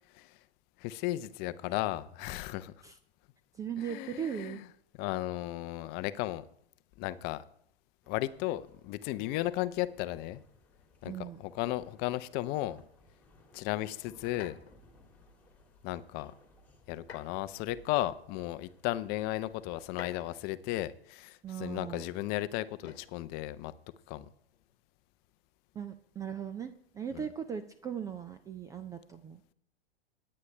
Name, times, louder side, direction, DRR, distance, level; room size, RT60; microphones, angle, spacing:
voice 1, 0.8-2.7 3.8-4.7 5.0-6.4 7.0-7.4 8.1-10.4 11.0-12.8 13.5-14.6 15.8-16.3 16.9-23.7 24.1-24.3 27.1-27.3, left 16 dB, 35° left, 0.6 m, -35 dB
voice 2, 3.6-4.6 11.0-11.4 21.4-22.1 25.8-29.4, right 8 dB, 10° right, 0.3 m, -38 dB
sound 1, 8.0-20.6, left 2 dB, 5° left, 2.2 m, -62 dB
sound 2, 14.4-14.8 17.0-17.5 18.5-18.6 19.8-20.6 22.8-23.2 24.4-24.8, left 6 dB, 90° left, 1.2 m, -49 dB
18.5 x 8.6 x 3.3 m
hypercardioid pair, 105°, 31 cm